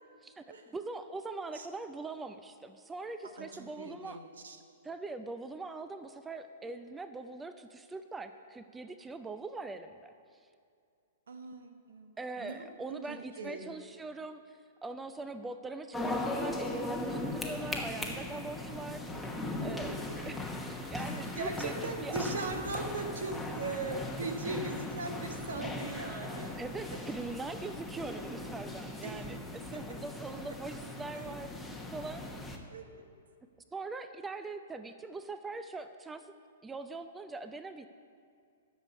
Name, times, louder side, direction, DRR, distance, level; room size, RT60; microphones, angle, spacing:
voice 1, 0.2-4.2 4.8-10.1 12.2-19.3 19.6-19.9 20.3-22.3 26.6-32.5 33.7-36.3 36.6-37.9, right 3 dB, 10° right, 10 dB, 0.5 m, -42 dB
voice 2, 3.4-4.6 11.3-13.7 19.7-19.9 21.0-26.6 26.9-27.0 29.0-29.2 29.7-29.8 32.7-33.0, right 3 dB, 75° right, 6 dB, 1.1 m, -40 dB
sound 1, 15.9-32.6, left 2 dB, 5° left, 1.1 m, -38 dB
11.5 x 6.8 x 7.0 m, 2.3 s
hypercardioid pair, 115°, 0 cm